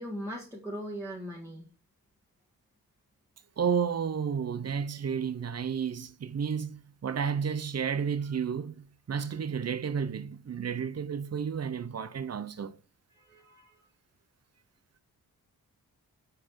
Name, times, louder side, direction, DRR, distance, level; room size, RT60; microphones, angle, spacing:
voice 1, 0.0-1.6 13.1-13.8, equal, 5° right, 1.6 m, -39 dB
voice 2, 3.6-12.7, right 7 dB, 45° right, 0.7 m, -32 dB
7.5 x 6.8 x 4.6 m
wide cardioid pair, 180°, 36 cm